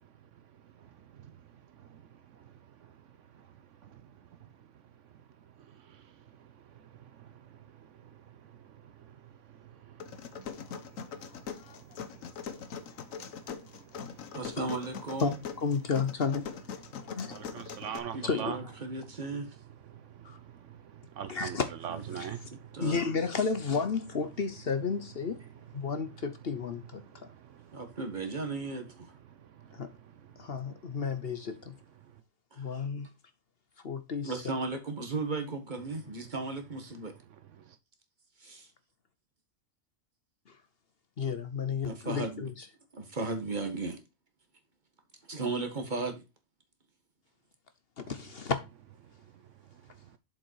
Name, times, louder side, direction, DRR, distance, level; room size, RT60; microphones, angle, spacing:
sound 1, 10.0-18.0, left 7 dB, 80° left, 1.3 m, -42 dB
voice 1, 10.6-11.0 13.2-13.3 17.3-18.6 19.9-20.3 20.6-22.8 27.3-27.8, right 8 dB, 70° right, 1.0 m, -41 dB
voice 2, 14.3-15.4 18.1-19.5 21.9-22.0 22.5-23.0 27.7-29.1 32.5-32.6 34.2-37.1 38.4-38.7 41.8-42.5 42.9-44.0 45.3-46.2, right 3 dB, 35° right, 1.7 m, -36 dB
voice 3, 15.2-16.5 17.2-17.4 18.2-18.7 20.2-20.4 21.3-21.7 22.1-22.3 22.8-25.4 25.7-27.3 29.7-29.9 30.4-31.7 32.6-33.1 33.8-34.3 41.2-42.5 48.0-48.6, left 5 dB, 50° left, 1.0 m, -32 dB
7.3 x 5.5 x 4.6 m
omnidirectional pair, 1.4 m